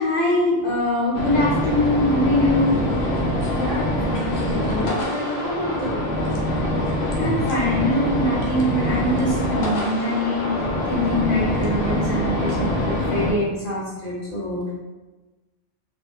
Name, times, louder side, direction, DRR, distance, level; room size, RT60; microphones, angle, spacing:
voice 1, 0.0-2.8 7.2-10.5 10.9-14.6, left 1 dB, 85° left, -7 dB, 1.1 m, -23 dB
sound 1, 1.1-13.3, left 1 dB, 65° left, 0.8 m, -24 dB
voice 2, 3.4-6.0, equal, 45° right, -4 dB, 0.6 m, -29 dB
2.3 x 2.1 x 2.8 m, 1.2 s
omnidirectional pair, 1.3 m